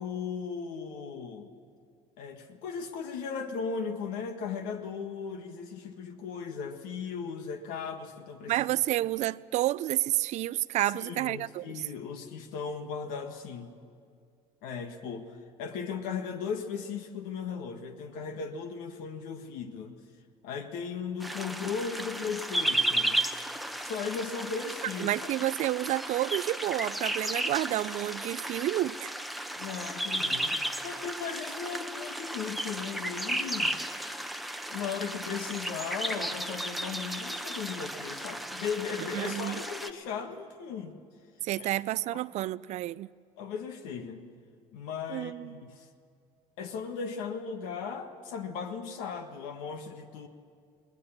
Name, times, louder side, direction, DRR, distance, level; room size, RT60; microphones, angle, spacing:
voice 1, 0.0-1.5 2.2-8.7 10.8-13.7 14.6-20.0 20.4-23.2 23.8-25.1 29.5-30.6 30.8-33.8 34.7-40.9 41.6-41.7 42.1-42.2 43.4-44.3 44.7-45.9 46.6-50.3, left 6 dB, 75° left, 1.6 m, -37 dB
voice 2, 8.5-11.8 25.0-29.1 39.1-39.6 41.4-43.1 45.1-45.5, right 15 dB, 55° right, 0.5 m, -30 dB
sound 1, 21.2-39.9, right 1 dB, ahead, 0.9 m, -34 dB
21.0 x 18.5 x 7.3 m
supercardioid pair, 100°, 14 cm